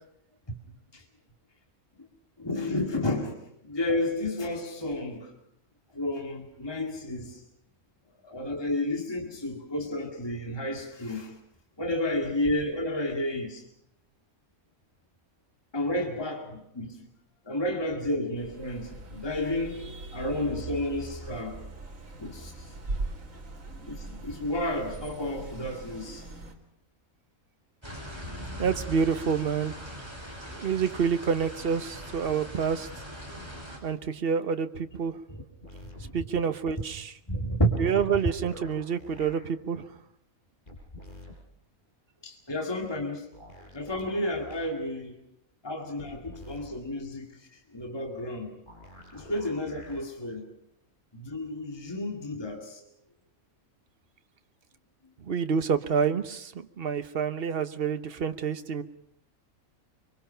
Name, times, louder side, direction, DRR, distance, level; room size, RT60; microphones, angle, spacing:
voice 1, 2.4-5.3 5.9-7.4 8.2-11.3 11.8-13.6 15.7-17.1 17.5-19.8 20.1-21.6 22.2-22.7 23.9-26.3 30.6-30.7 35.3-35.4 36.0-36.3 37.3-37.8 42.2-43.3 43.7-45.2 45.6-48.5 49.1-50.4 51.1-52.8, left 1 dB, 15° left, 2 dB, 2.2 m, -31 dB
sound 1, 18.4-26.5, right 2 dB, 65° right, 2.8 m, -40 dB
sound 2, 27.8-33.8, equal, 20° right, 5.0 m, -41 dB
voice 2, 28.6-29.9 30.6-32.9 33.8-35.2 36.1-37.1 37.8-39.9 55.2-58.8, right 6 dB, 45° right, 10 dB, 1.1 m, -28 dB
sound 3, 35.6-36.0 38.0-39.3 40.7-41.3 43.3-44.7 46.0-46.7 48.7-50.0 51.3-51.4, left 1 dB, 35° left, 5.8 m, -47 dB
24.5 x 23.5 x 5.7 m, 0.74 s
omnidirectional pair, 1.5 m